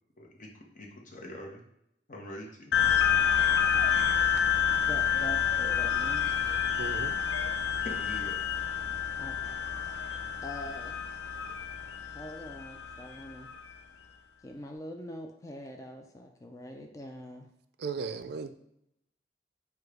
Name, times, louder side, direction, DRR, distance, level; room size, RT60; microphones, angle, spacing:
voice 1, 0.2-0.5 0.7-1.6 2.1-2.7 7.8-8.4, left 1 dB, 45° left, 0.8 m, -43 dB
sound 1, 2.7-13.6, left 8 dB, 80° left, 0.5 m, -28 dB
voice 2, 4.8-6.3 9.2-9.6 10.4-11.0 12.1-13.5 14.4-17.5, left 1 dB, 20° left, 0.4 m, -43 dB
voice 3, 6.8-7.2 17.8-18.5, right 5 dB, 65° right, 0.4 m, -36 dB
4.8 x 2.3 x 4.8 m
head